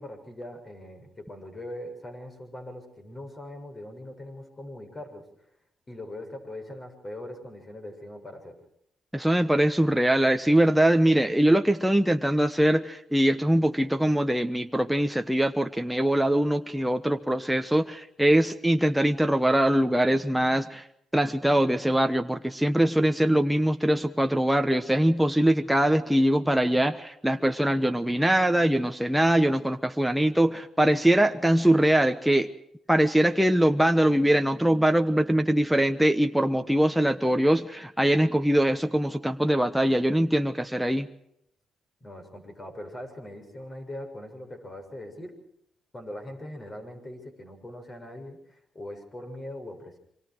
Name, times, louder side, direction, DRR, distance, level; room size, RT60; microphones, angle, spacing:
voice 1, 0.0-5.3 5.9-8.6 42.0-45.3 45.9-50.0, left 1 dB, 25° left, 6 dB, 7.0 m, -41 dB
voice 2, 9.1-20.9 21.1-32.5 32.9-41.1, right 1 dB, 5° right, 6 dB, 1.1 m, -22 dB
27.0 x 24.5 x 4.8 m, 0.73 s
cardioid pair, 90°, 0 cm